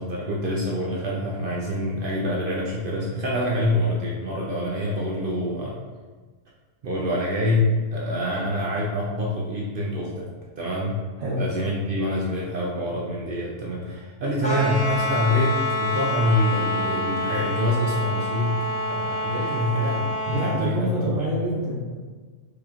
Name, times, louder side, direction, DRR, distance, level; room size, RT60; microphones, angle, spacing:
voice 1, 0.0-5.8 6.8-10.3 10.6-11.1 11.4-21.1, left 1 dB, 65° right, -4 dB, 0.5 m, -26 dB
sound 1, 14.4-20.6, left 1 dB, 5° left, 1.1 m, -27 dB
voice 2, 20.3-22.0, right 1 dB, 80° right, -5 dB, 1.3 m, -27 dB
4.7 x 2.9 x 2.4 m, 1.4 s
omnidirectional pair, 1.4 m